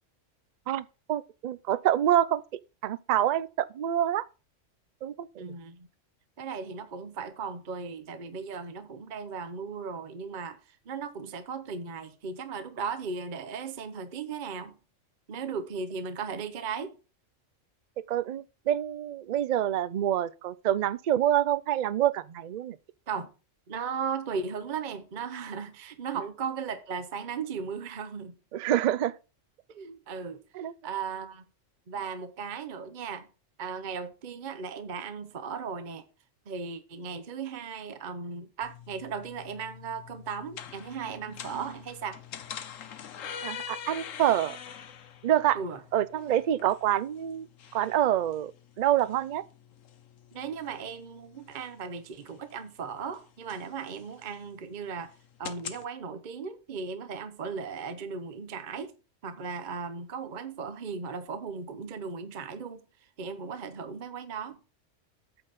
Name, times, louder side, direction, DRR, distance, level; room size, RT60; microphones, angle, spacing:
voice 1, 0.7-2.4 2.8-4.2 5.0-5.5 18.1-22.8 28.5-29.1 30.5-30.7 43.4-44.6 45.2-45.6 45.9-47.5 47.7-48.5 48.8-49.4, right 11 dB, 65° right, 0.4 m, -26 dB
voice 2, 5.4-5.9 6.4-14.8 15.3-16.9 23.1-23.3 23.7-28.3 29.7-30.4 30.8-31.4 31.9-33.3 33.6-36.0 36.5-42.2 45.5-45.8 50.3-55.1 55.4-58.9 59.2-62.8 63.2-64.6, right 5 dB, 45° right, 0.9 m, -37 dB
sound 1, 38.6-55.8, left 8 dB, 80° left, 1.2 m, -45 dB
8.8 x 4.0 x 6.8 m
omnidirectional pair, 1.3 m